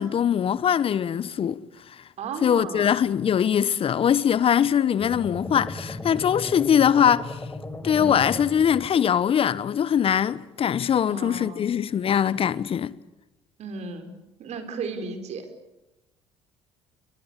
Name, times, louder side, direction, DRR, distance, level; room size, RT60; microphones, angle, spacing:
voice 1, 0.0-1.6 1.9-2.0 2.4-7.4 7.8-12.9, left 8 dB, 40° left, 1.0 m, -22 dB
voice 2, 2.2-2.9 7.9-8.2 11.0-11.7 13.6-14.1 14.4-15.5, right 4 dB, 55° right, 4.9 m, -35 dB
sound 1, 5.0-9.3, left 2 dB, 15° left, 4.2 m, -36 dB
29.0 x 23.5 x 8.3 m
hypercardioid pair, 60°, 14 cm